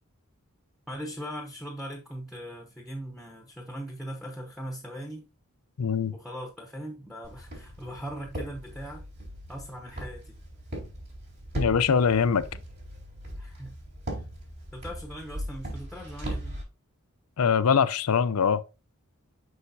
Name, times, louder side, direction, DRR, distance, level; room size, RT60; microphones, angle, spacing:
voice 1, 0.9-5.3 6.1-9.0 9.5-10.4 13.4-13.8 14.7-16.6, equal, ahead, 0.8 m, -39 dB
voice 2, 5.8-6.1 11.6-12.4 17.4-18.6, left 6 dB, 85° left, 0.5 m, -23 dB
Walk footsteps, 7.2-16.6, right 1 dB, 50° right, 3.8 m, -39 dB
6.4 x 5.6 x 2.7 m
head